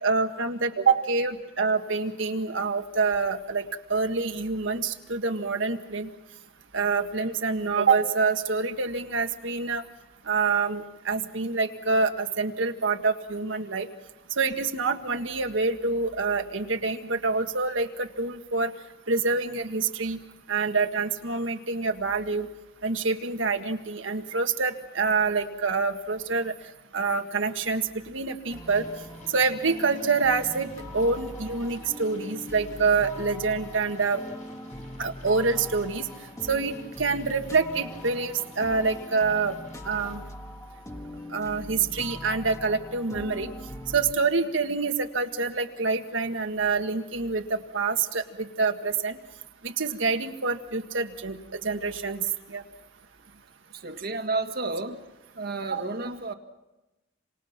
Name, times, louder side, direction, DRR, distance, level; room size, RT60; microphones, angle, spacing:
voice 1, 0.0-6.1 6.7-9.8 10.3-13.9 14.4-18.7 19.1-20.2 20.5-22.5 22.8-26.5 26.9-28.8 29.3-34.2 35.0-36.1 36.5-39.6 39.8-40.2 41.3-43.5 43.9-49.2 49.6-52.2 52.5-52.6 55.7-55.8, right 4 dB, 70° right, 5 dB, 1.7 m, -26 dB
sound 1, 28.5-40.2, left 1 dB, 45° left, 7.9 m, -50 dB
sound 2, 28.5-44.1, left 1 dB, 15° left, 1.7 m, -42 dB
voice 2, 53.7-55.0 55.4-56.3, right 3 dB, 50° right, 6 dB, 1.9 m, -31 dB
27.5 x 27.5 x 5.9 m, 1.0 s
head